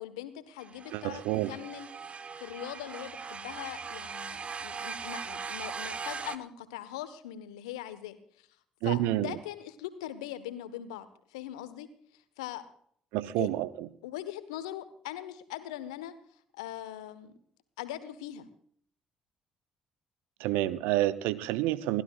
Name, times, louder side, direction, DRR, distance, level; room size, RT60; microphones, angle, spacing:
voice 1, 0.0-1.9 2.4-8.5 8.8-11.9 12.1-12.7 13.4-13.5 14.0-16.1 16.5-17.3 17.8-18.5, left 12 dB, 75° left, 12 dB, 1.2 m, -41 dB
sound 1, 0.6-6.4, right 5 dB, 35° right, 1.1 m, -40 dB
voice 2, 0.9-1.5 8.8-9.3 13.1-13.9 20.4-22.0, right 15 dB, 70° right, 16 dB, 0.8 m, -29 dB
29.0 x 12.5 x 2.4 m, 0.62 s
figure-of-eight pair, 45°, 3 cm